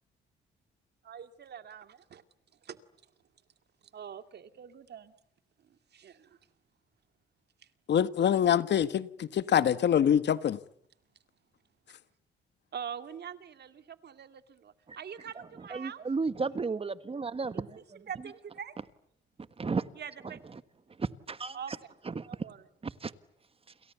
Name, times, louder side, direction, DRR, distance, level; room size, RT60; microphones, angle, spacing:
voice 1, 1.0-2.2 2.6-2.8 3.9-5.1 5.6-6.4 9.5-9.7 12.7-16.0 17.5-17.6 18.1-18.7 19.9-20.4 21.5-21.7 22.3-22.6, right 8 dB, 55° right, 2.4 m, -44 dB
voice 2, 7.9-10.6, left 9 dB, 60° left, 1.4 m, -25 dB
voice 3, 15.3-18.0 19.6-19.8 20.2-20.6 21.0-21.8 22.0-22.3 22.8-23.1, right 4 dB, 30° right, 1.5 m, -34 dB
29.0 x 28.0 x 7.1 m
cardioid pair, 90°, 20 cm